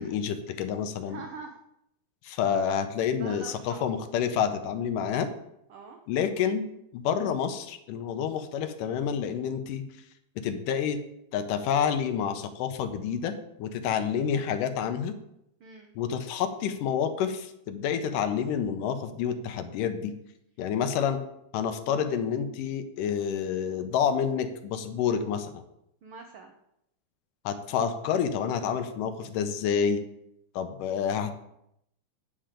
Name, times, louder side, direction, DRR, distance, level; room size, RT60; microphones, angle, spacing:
voice 1, 0.0-1.2 2.2-5.3 6.1-6.7 6.9-9.8 10.4-11.0 11.3-13.3 13.6-15.1 16.0-20.1 20.6-21.2 21.5-25.5 27.5-30.0 30.6-31.3, left 7 dB, 85° left, 9 dB, 2.4 m, -28 dB
voice 2, 1.0-1.6 2.3-2.4 3.2-3.8 5.7-6.0 13.8-14.1 15.6-15.9 26.0-26.5, right 4 dB, 70° right, 3 dB, 1.3 m, -44 dB
10.0 x 5.0 x 7.5 m, 0.79 s
omnidirectional pair, 3.7 m